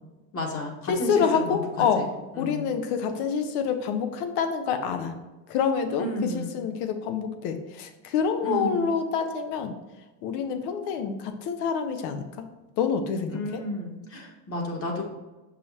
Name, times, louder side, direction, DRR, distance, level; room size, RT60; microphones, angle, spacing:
voice 1, 0.3-2.1 2.3-2.7 6.0-6.7 8.4-8.9 13.3-15.0, left 1 dB, 30° left, 1 dB, 1.5 m, -32 dB
voice 2, 0.9-2.1 2.4-5.1 5.5-6.1 6.3-9.7 10.2-12.2 12.8-13.6, left 6 dB, 70° left, 8 dB, 1.0 m, -27 dB
6.6 x 5.4 x 2.8 m, 1.1 s
supercardioid pair, 125°, 42 cm